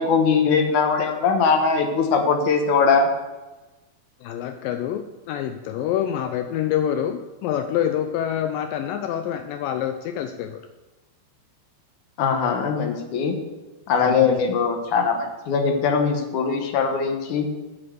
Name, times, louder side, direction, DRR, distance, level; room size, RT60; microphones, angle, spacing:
voice 1, 0.0-3.1 12.2-13.4 13.9-17.5, left 5 dB, 65° left, 4 dB, 2.2 m, -21 dB
voice 2, 4.2-10.6 14.0-14.4, left 10 dB, 80° left, 8 dB, 2.0 m, -26 dB
8.5 x 6.9 x 7.8 m, 1.1 s
omnidirectional pair, 4.4 m